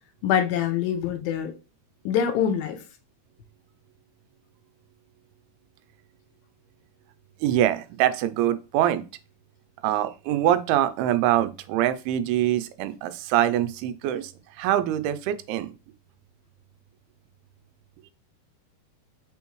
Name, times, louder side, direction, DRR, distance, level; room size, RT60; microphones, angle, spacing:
voice 1, 0.2-1.5 2.1-2.8, left 8 dB, 80° left, 2.3 m, -24 dB
voice 2, 7.4-9.0 9.8-14.3 14.6-15.7, right 12 dB, 85° right, 2.5 m, -24 dB
7.0 x 4.7 x 3.1 m
omnidirectional pair, 4.5 m